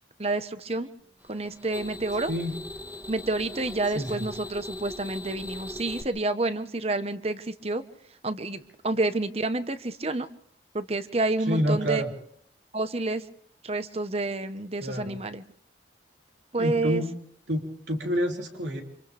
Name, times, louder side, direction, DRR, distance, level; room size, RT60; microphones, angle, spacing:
voice 1, 0.2-0.9 1.3-2.3 3.1-7.8 8.2-10.3 10.7-12.0 12.7-13.2 13.6-15.4 16.5-17.0, right 2 dB, 35° right, 11 dB, 1.1 m, -29 dB
sound 1, 1.2-6.0, left 1 dB, 10° right, 1.7 m, -40 dB
voice 2, 3.9-4.3 11.5-12.1 14.8-15.2 16.6-17.1 17.5-18.8, equal, 80° right, 1 dB, 3.5 m, -28 dB
29.0 x 26.5 x 3.5 m, 0.67 s
head